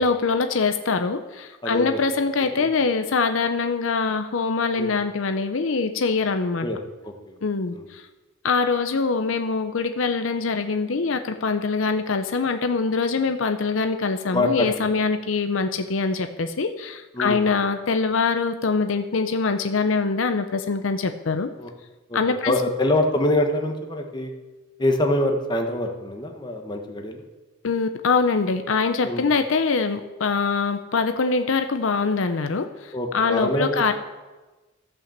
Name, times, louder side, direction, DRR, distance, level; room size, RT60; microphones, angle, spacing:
voice 1, 0.0-6.7 7.4-8.1 8.4-21.5 22.1-22.5 27.6-33.9, left 4 dB, 75° left, 8 dB, 0.6 m, -23 dB
voice 2, 1.6-2.0 2.6-2.7 4.8-4.9 6.6-6.8 7.0-7.4 7.7-7.8 14.3-14.9 17.1-17.5 21.6-21.7 22.1-22.2 22.5-24.3 24.8-27.2 29.0-29.2 32.9-33.9, left 1 dB, 20° left, 3 dB, 1.2 m, -25 dB
14.0 x 5.9 x 7.3 m, 1.2 s
head